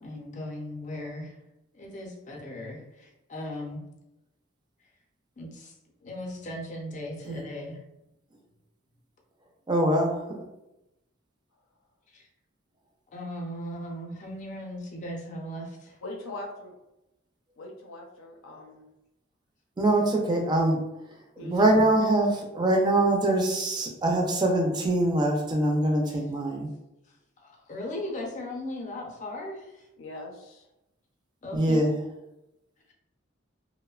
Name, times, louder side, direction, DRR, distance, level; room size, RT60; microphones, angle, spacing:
voice 1, 0.0-1.4 1.7-3.8 5.4-5.7 6.0-7.8 12.1-12.3 13.1-16.0 26.1-26.2 27.4-29.9 31.4-31.8, left 1 dB, 40° left, 0 dB, 0.5 m, -37 dB
voice 2, 9.7-10.4 19.8-20.8 21.4-26.7 31.5-31.9, right 1 dB, 20° right, 1 dB, 0.4 m, -23 dB
voice 3, 16.0-16.7 17.6-18.9 21.4-21.7 30.0-30.7, left 2 dB, 85° left, 1 dB, 0.6 m, -41 dB
2.9 x 2.1 x 2.3 m, 0.92 s
head